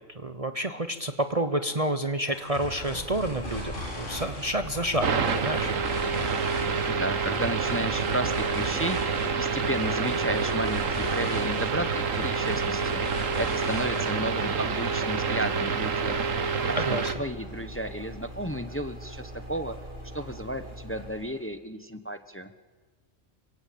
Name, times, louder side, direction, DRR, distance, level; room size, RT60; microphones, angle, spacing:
voice 1, 0.1-5.7 16.8-17.1, right 1 dB, 30° right, 8 dB, 1.0 m, -29 dB
sound 1, 2.3-14.5, left 1 dB, 40° left, 6.5 m, -39 dB
sound 2, 2.6-21.5, equal, 60° right, 6.6 m, -42 dB
sound 3, 5.0-17.1, right 5 dB, 90° right, 1.7 m, -28 dB
voice 2, 6.9-9.0 9.4-16.2 16.6-19.7 20.1-22.5, right 1 dB, 10° left, 10 dB, 1.1 m, -33 dB
26.5 x 24.0 x 8.7 m, 1.4 s
omnidirectional pair, 1.3 m